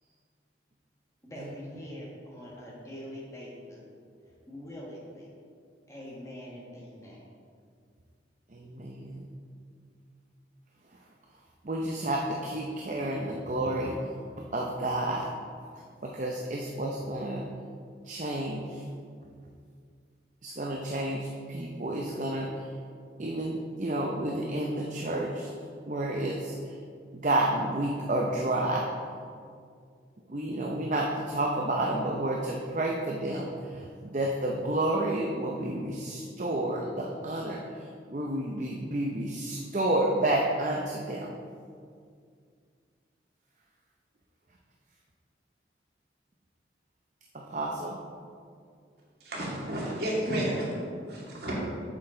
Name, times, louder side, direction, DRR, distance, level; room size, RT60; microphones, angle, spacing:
voice 1, 1.2-3.8 4.5-5.3 5.9-7.2, equal, 15° left, -5 dB, 1.6 m, -43 dB
voice 2, 8.5-9.3 11.6-13.9 14.5-15.3 16.0-17.4 18.0-18.8 20.4-22.6 23.2-25.5 25.9-26.7 27.1-28.9 30.3-41.3 47.3-48.0, right 1 dB, 40° right, -1 dB, 0.6 m, -30 dB
voice 3, 49.2-50.7 51.1-51.5, right 1 dB, 60° right, -5 dB, 2.3 m, -31 dB
8.6 x 7.6 x 3.8 m, 2.2 s
head